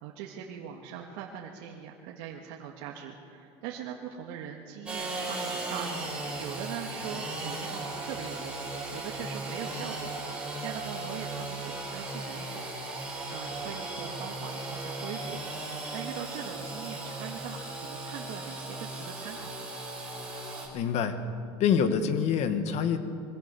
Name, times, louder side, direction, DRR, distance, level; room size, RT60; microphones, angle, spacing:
voice 1, 0.0-8.6 8.9-15.4 15.7-19.7, right 8 dB, 75° right, -1 dB, 1.9 m, -41 dB
Engine / Sawing, 4.9-20.7, right 2 dB, 5° right, 6.8 m, -37 dB
voice 2, 20.7-21.2 21.6-23.0, left 7 dB, 55° left, 9 dB, 1.8 m, -26 dB
23.0 x 16.5 x 7.1 m, 2.7 s
supercardioid pair, 115°, 14 cm